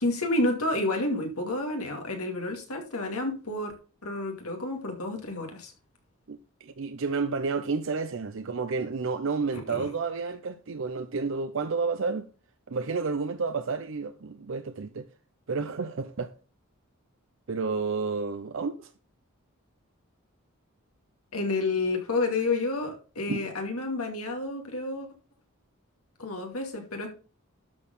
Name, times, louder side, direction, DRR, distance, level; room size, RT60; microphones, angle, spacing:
voice 1, 0.0-3.7 4.0-5.7 9.7-9.8 21.3-25.1 26.2-27.1, left 2 dB, 90° left, 2.3 m, -30 dB
voice 2, 6.3-12.3 12.7-15.1 15.5-16.3 17.5-18.9 23.3-23.4, right 4 dB, 60° right, 0.6 m, -30 dB
12.0 x 4.6 x 5.4 m
head